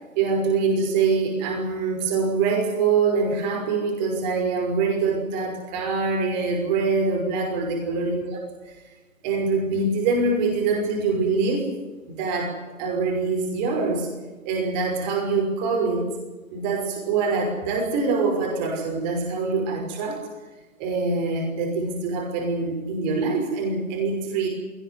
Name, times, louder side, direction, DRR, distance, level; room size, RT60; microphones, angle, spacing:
voice 1, 0.1-8.4 8.6-8.7 9.2-11.8 12.1-14.1 14.4-16.1 16.5-20.2 20.8-24.5, right 4 dB, 30° right, 1 dB, 5.9 m, -24 dB
20.0 x 19.0 x 9.7 m, 1.2 s
hypercardioid pair, 150°, 41 cm